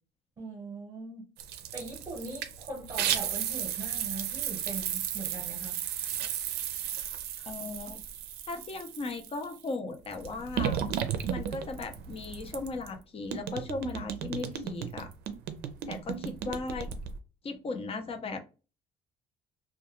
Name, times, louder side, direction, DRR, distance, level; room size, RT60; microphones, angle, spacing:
voice 1, 0.4-1.3 1.7-5.8, right 2 dB, 25° right, 0.9 m, -41 dB
sound 1, 1.4-9.5 10.0-13.0 13.3-17.2, right 9 dB, 75° right, 0.4 m, -34 dB
voice 2, 7.5-8.0 8.5-10.8 11.3-15.1 15.9-16.9 17.4-18.4, left 3 dB, 35° left, 0.5 m, -37 dB
2.3 x 2.2 x 2.9 m
cardioid pair, 110°, 17 cm